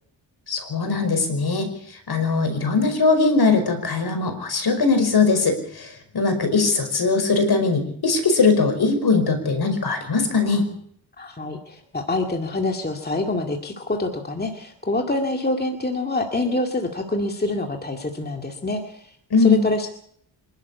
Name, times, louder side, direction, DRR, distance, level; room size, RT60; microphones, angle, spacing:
voice 1, 0.5-1.7 2.1-10.6 19.3-19.6, left 4 dB, 55° left, 7 dB, 5.2 m, -20 dB
voice 2, 11.2-19.1 19.4-19.9, left 2 dB, 20° left, 3 dB, 2.3 m, -26 dB
26.0 x 12.0 x 8.5 m, 0.67 s
wide cardioid pair, 115°, 47 cm